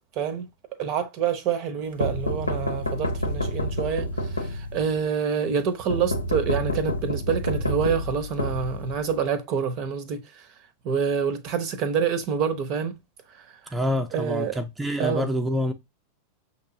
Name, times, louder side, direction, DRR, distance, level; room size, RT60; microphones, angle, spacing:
voice 1, 0.2-0.5 0.8-10.4 10.8-12.9 13.7-13.8 14.1-14.6 15.0-15.3, right 7 dB, 40° right, 0.7 m, -27 dB
sound 1, 2.0-5.0 5.9-9.2, left 1 dB, 85° left, 0.7 m, -28 dB
voice 2, 13.7-15.7, left 1 dB, 5° right, 0.5 m, -26 dB
6.5 x 3.0 x 2.6 m
figure-of-eight pair, 90°, 0 cm